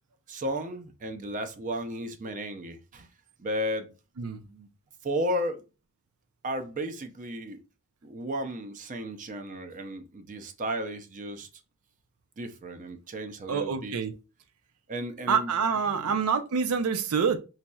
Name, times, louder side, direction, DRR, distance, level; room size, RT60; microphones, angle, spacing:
voice 1, 0.3-3.1 3.4-3.9 4.3-4.7 5.0-5.6 6.4-7.6 8.0-11.5 12.4-13.9 14.9-15.5 16.0-16.1, equal, 35° right, 0.5 m, -34 dB
voice 2, 13.5-14.1 15.3-17.4, right 6 dB, 90° right, 0.5 m, -26 dB
4.1 x 3.0 x 2.2 m
head